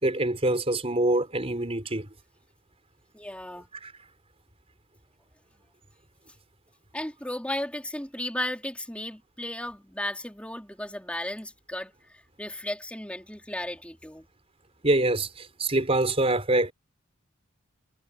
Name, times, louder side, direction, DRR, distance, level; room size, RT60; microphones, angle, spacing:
voice 1, 0.0-2.1 3.8-3.9 14.8-16.7, right 2 dB, 30° right, 4.6 m, -25 dB
voice 2, 3.1-3.7 6.9-11.9 12.4-14.3, left 1 dB, 5° left, 4.3 m, -34 dB
head